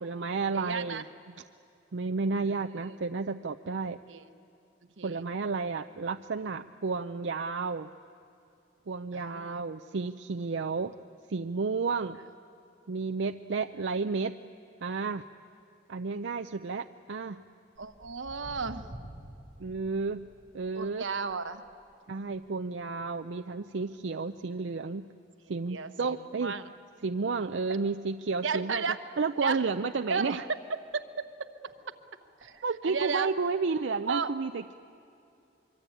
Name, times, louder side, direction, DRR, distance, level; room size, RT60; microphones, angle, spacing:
voice 1, 0.0-1.0 1.9-4.0 5.0-7.9 8.9-10.9 11.3-12.2 12.9-14.3 14.8-15.2 15.9-17.4 19.6-20.3 20.5-21.1 22.1-25.0 25.5-26.5 27.0-30.4 32.6-34.7, right 4 dB, 70° right, 8 dB, 0.5 m, -32 dB
voice 2, 0.5-1.0 2.5-2.9 4.1-4.3 5.0-5.2 9.1-9.6 17.8-18.8 20.7-21.6 25.7-26.2 26.4-26.6 28.4-29.0 29.4-29.6 30.1-30.4 30.7-31.5 32.4-33.3 34.1-34.3, right 5 dB, 90° right, 10 dB, 1.2 m, -34 dB
Walk footsteps, 17.8-24.4 24.7-25.1 25.7-25.8 26.4-26.5 26.9-27.0 27.2-27.3 27.9-28.0 28.7-30.3 30.9-31.0 31.7-31.8 32.2-32.5 33.1-33.2, equal, 40° right, 7.8 m, -51 dB
24.5 x 24.0 x 9.1 m, 2.6 s
head